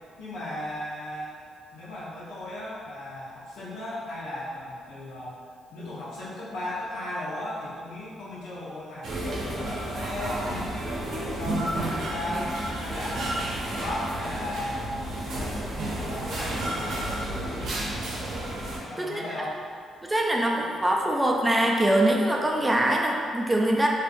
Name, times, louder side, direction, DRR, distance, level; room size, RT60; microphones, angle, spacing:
voice 1, 0.2-1.4 1.7-5.4 5.7-9.1 9.6-15.0 15.2-17.1 18.9-19.6, left 1 dB, 80° left, -8 dB, 0.8 m, -36 dB
sound 1, 9.0-18.8, right 1 dB, 65° right, 0.6 m, -31 dB
voice 2, 20.0-23.9, right 1 dB, 15° right, -1 dB, 0.3 m, -23 dB
2.5 x 2.4 x 2.5 m, 2.1 s
cardioid pair, 90°, 0 cm